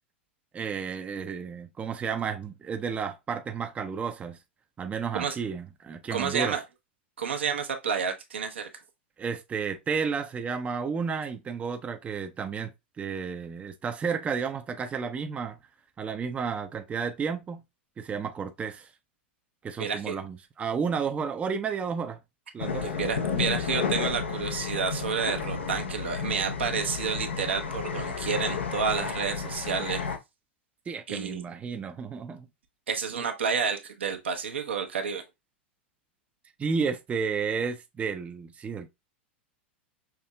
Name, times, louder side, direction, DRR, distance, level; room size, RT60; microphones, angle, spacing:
voice 1, 0.5-4.4 4.8-6.6 9.2-12.7 13.0-15.6 16.0-17.6 18.0-18.9 19.6-22.2 22.5-22.9 30.9-32.5 36.6-38.9, right 6 dB, 20° right, 0.5 m, -32 dB
voice 2, 6.1-6.6 7.2-8.7 19.8-20.2 22.8-30.1 31.1-31.4 32.9-35.2, right 6 dB, 75° right, 0.8 m, -30 dB
sound 1, 22.6-30.2, left 6 dB, 80° left, 0.6 m, -32 dB
5.8 x 2.7 x 2.2 m
figure-of-eight pair, 90°, 6 cm